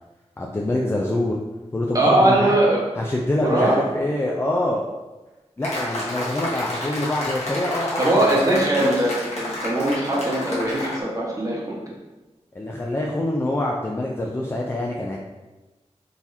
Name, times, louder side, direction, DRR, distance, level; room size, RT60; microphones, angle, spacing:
voice 1, 0.4-1.4 1.7-2.5 3.0-4.8 5.6-8.5 12.6-15.2, left 1 dB, 20° left, -2 dB, 0.4 m, -25 dB
voice 2, 1.9-2.8 3.4-3.8 8.0-11.8, right 1 dB, 30° right, -5 dB, 1.1 m, -20 dB
sound 1, 5.6-11.0, left 1 dB, 70° left, 1.1 m, -30 dB
3.9 x 2.9 x 2.6 m, 1.1 s
wide cardioid pair, 65°, 11 cm